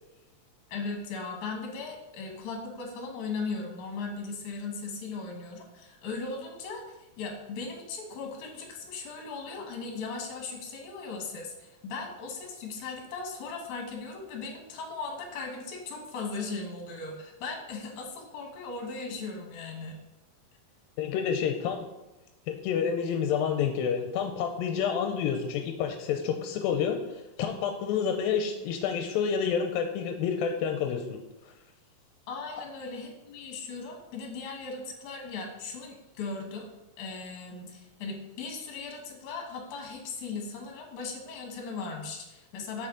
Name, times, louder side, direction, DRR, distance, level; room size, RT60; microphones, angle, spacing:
voice 1, 0.7-20.0 32.3-36.7 37.0-42.9, left 4 dB, 65° left, 2 dB, 2.6 m, -38 dB
voice 2, 21.0-21.8 22.5-31.2, left 7 dB, 85° left, 5 dB, 2.4 m, -29 dB
7.8 x 6.1 x 3.8 m, 1.0 s
omnidirectional pair, 4.1 m